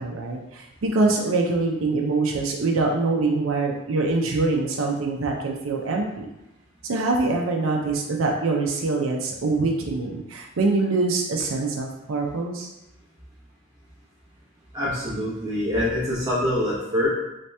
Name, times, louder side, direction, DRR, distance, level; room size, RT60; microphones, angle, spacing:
voice 1, 0.0-6.3 6.8-12.7, right 3 dB, 70° right, 0 dB, 0.5 m, -24 dB
voice 2, 14.7-17.1, left 1 dB, 20° right, -8 dB, 0.7 m, -25 dB
3.2 x 2.8 x 3.3 m, 0.92 s
head